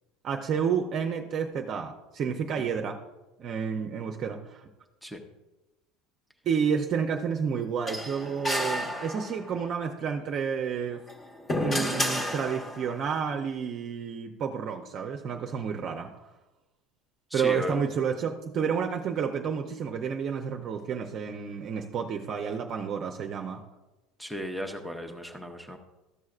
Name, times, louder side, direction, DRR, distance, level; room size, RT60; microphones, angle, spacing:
voice 1, 0.2-3.0 3.4-4.6 6.4-11.0 11.6-16.3 17.3-23.6, right 6 dB, 40° right, 4 dB, 0.6 m, -30 dB
sound 1, 7.9-9.6 11.0-13.0, left 1 dB, 20° left, 1.1 m, -31 dB
voice 2, 17.3-17.8 24.2-25.8, equal, ahead, 2 dB, 0.7 m, -35 dB
13.5 x 6.3 x 2.4 m, 1.0 s
cardioid pair, 145°, 0 cm